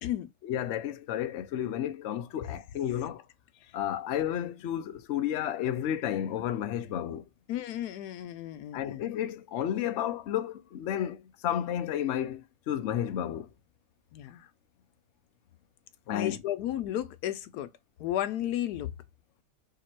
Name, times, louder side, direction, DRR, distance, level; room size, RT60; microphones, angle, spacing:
voice 1, 0.4-3.2 3.7-7.3 8.7-13.5 16.1-16.4, left 10 dB, 60° left, 0.8 m, -32 dB
voice 2, 7.5-9.0 14.1-14.5 16.1-17.7 18.0-18.9, left 12 dB, 80° left, 1.1 m, -33 dB
3.5 x 2.9 x 4.4 m
omnidirectional pair, 1.7 m